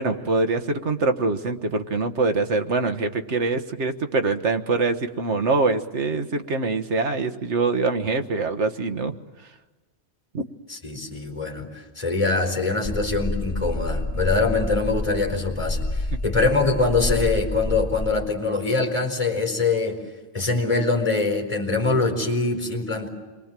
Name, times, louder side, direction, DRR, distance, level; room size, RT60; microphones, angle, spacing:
voice 1, 0.0-9.2 10.3-10.4, right 3 dB, 90° right, 7 dB, 1.7 m, -24 dB
voice 2, 10.7-20.0 20.3-23.1, left 3 dB, 30° left, 3 dB, 4.7 m, -23 dB
sound 1, 12.8-18.1, left 1 dB, 5° left, 2.0 m, -28 dB
28.5 x 23.0 x 7.6 m, 1.3 s
omnidirectional pair, 1.1 m